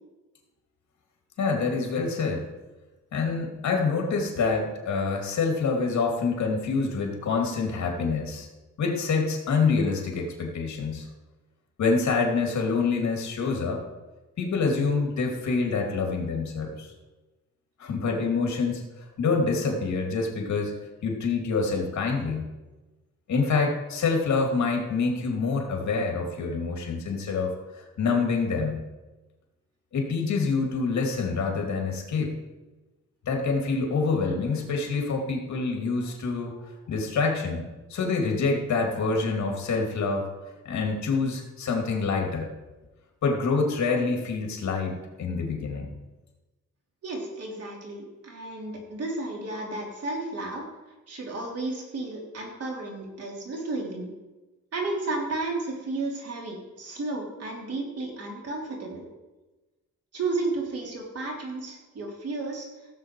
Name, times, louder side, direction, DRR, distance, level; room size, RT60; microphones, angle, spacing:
voice 1, 1.4-2.4 3.1-8.5 8.8-11.1 11.8-13.8 14.4-16.9 17.8-18.8 19.2-20.7 21.0-22.5 23.3-28.8 29.9-32.4 33.3-40.3 40.6-42.5 43.2-45.9, left 4 dB, 70° left, 1 dB, 2.6 m, -26 dB
voice 2, 47.0-50.7 51.1-54.1 54.7-59.1 60.1-62.7, right 2 dB, 55° right, -1 dB, 3.3 m, -33 dB
16.5 x 7.6 x 4.7 m, 1.1 s
cardioid pair, 135°, 29 cm